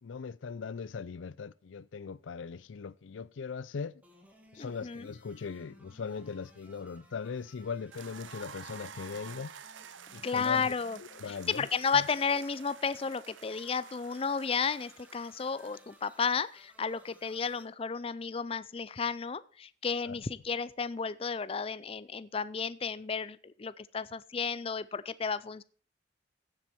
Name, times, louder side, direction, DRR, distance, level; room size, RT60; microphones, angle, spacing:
voice 1, 0.0-4.0 4.5-9.5 10.1-11.7 11.9-12.1 20.0-20.2, left 5 dB, 85° left, 0.5 m, -40 dB
sound 1, 4.0-17.6, equal, 10° right, 2.1 m, -60 dB
voice 2, 4.6-5.0 10.2-11.0 11.5-25.6, left 5 dB, 30° left, 0.4 m, -33 dB
sound 2, 7.9-16.0, right 7 dB, 85° right, 0.7 m, -50 dB
15.5 x 7.7 x 4.3 m
head